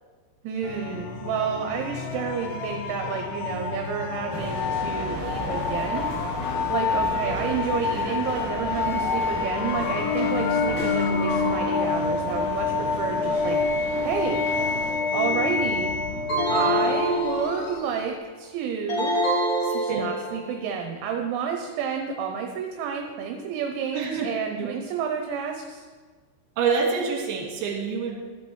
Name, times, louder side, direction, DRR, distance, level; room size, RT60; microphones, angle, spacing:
voice 1, 0.4-6.1 6.7-14.4 15.1-16.0 16.5-19.2 19.7-25.8, right 7 dB, 80° right, 3 dB, 3.0 m, -30 dB
sound 1, 0.6-18.1, left 4 dB, 80° left, 2.4 m, -28 dB
sound 2, 4.3-14.9, right 1 dB, 35° right, 1.1 m, -35 dB
sound 3, 16.3-17.8 18.9-20.5, right 1 dB, 40° left, 2.5 m, -25 dB
voice 2, 19.6-20.1 23.9-24.3 24.6-24.7 26.6-28.2, right 5 dB, 65° right, 0 dB, 3.2 m, -27 dB
13.0 x 8.0 x 3.1 m, 1.5 s
omnidirectional pair, 5.6 m